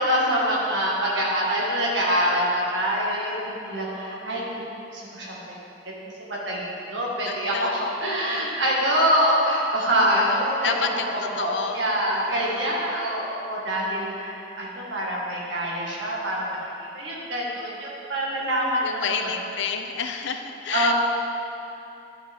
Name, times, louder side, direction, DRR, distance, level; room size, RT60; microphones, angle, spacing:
voice 1, 0.0-4.6 4.9-5.5 6.3-7.7 8.0-16.7 16.9-19.3 20.7-20.9, equal, 85° right, -4 dB, 1.8 m, -25 dB
voice 2, 7.2-8.5 10.6-11.8 12.1-12.8 18.8-20.9, left 6 dB, 85° left, 6 dB, 0.6 m, -30 dB
11.0 x 6.4 x 3.6 m, 2.9 s
head